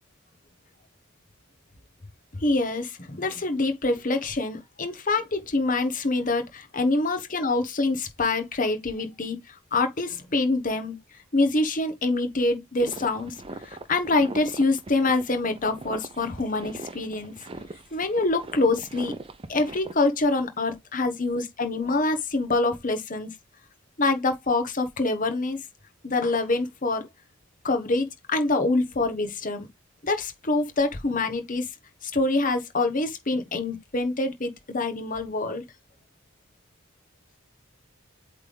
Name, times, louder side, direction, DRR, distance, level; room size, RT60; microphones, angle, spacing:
voice 1, 2.4-11.0 11.3-13.4 13.6-17.3 17.9-19.1 19.5-23.3 24.0-25.6 26.0-27.1 27.6-29.7 30.0-31.7 32.0-35.6, left 2 dB, 40° left, 1.2 m, -25 dB
sound 1, 12.8-19.9, right 2 dB, 25° right, 0.6 m, -41 dB
8.1 x 3.4 x 3.4 m
head